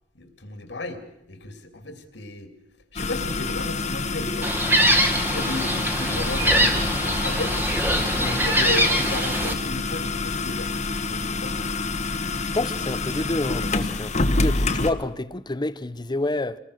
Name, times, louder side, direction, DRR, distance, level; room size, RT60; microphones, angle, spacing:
voice 1, 0.1-1.0 1.3-2.5 2.9-4.5 5.1-7.6 7.9-10.7 11.0-11.7, left 2 dB, 70° left, 2.6 m, -34 dB
sound 1, 3.0-14.9, left 3 dB, 40° left, 1.4 m, -27 dB
Gull seagull, 4.4-9.5, equal, 10° right, 1.9 m, -23 dB
voice 2, 12.5-16.6, left 2 dB, 25° left, 0.7 m, -28 dB
25.5 x 20.0 x 6.4 m
head